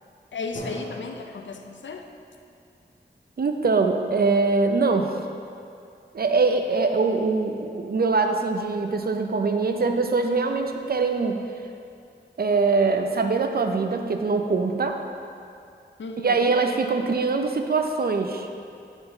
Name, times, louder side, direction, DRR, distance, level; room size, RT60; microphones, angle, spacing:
voice 1, 0.3-2.1 16.0-16.5, left 3 dB, 90° left, 4 dB, 0.5 m, -35 dB
Drum, 0.5-4.2, equal, 50° left, 1.8 m, -43 dB
voice 2, 3.4-5.1 6.1-11.4 12.4-15.0 16.2-18.5, right 4 dB, 55° right, 5 dB, 0.5 m, -23 dB
9.5 x 4.5 x 3.9 m, 2.4 s
wide cardioid pair, 70°, 19 cm